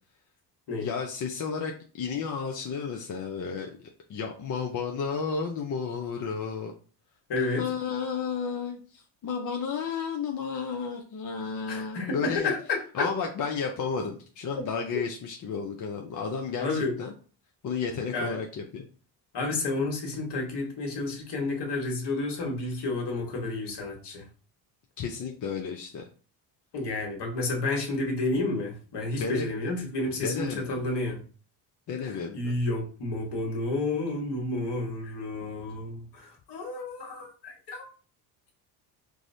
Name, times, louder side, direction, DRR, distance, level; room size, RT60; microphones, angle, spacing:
voice 1, 0.8-1.7 2.0-3.7 4.1-6.7 7.6-12.5 12.9-17.1 17.6-18.8 25.0-26.0 29.1-29.5 30.2-30.9 31.9-32.6, left 5 dB, 40° left, 2 dB, 0.6 m, -32 dB
voice 2, 7.3-7.6 11.7-13.1 16.6-17.0 18.1-18.4 19.3-24.3 26.7-31.2 32.0-37.8, left 2 dB, 55° left, 0 dB, 1.4 m, -31 dB
4.7 x 2.0 x 2.6 m, 0.39 s
supercardioid pair, 75°, 47 cm